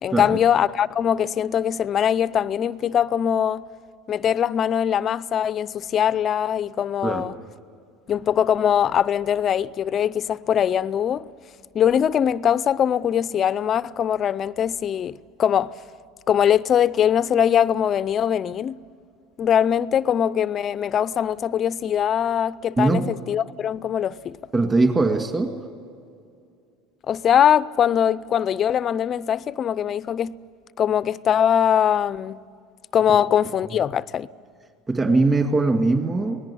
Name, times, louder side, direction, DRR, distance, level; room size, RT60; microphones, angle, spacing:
voice 1, 0.0-3.7 4.1-7.4 8.1-11.3 11.7-15.7 16.3-18.8 19.4-24.4 27.1-30.4 30.8-32.4 32.9-34.3, left 9 dB, 35° left, 0.5 m, -22 dB
voice 2, 22.8-23.1 24.5-25.6 34.9-36.4, right 3 dB, 20° right, 2.2 m, -21 dB
25.5 x 19.5 x 8.7 m
supercardioid pair, 125°, 0 cm